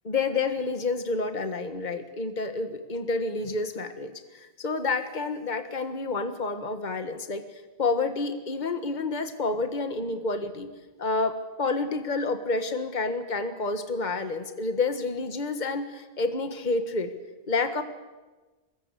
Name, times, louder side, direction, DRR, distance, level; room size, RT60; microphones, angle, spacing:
voice 1, 0.0-7.4 7.8-10.7 11.0-17.1 17.5-17.8, left 3 dB, 45° left, 8 dB, 1.6 m, -29 dB
24.5 x 20.5 x 8.5 m, 1.2 s
omnidirectional pair, 1.1 m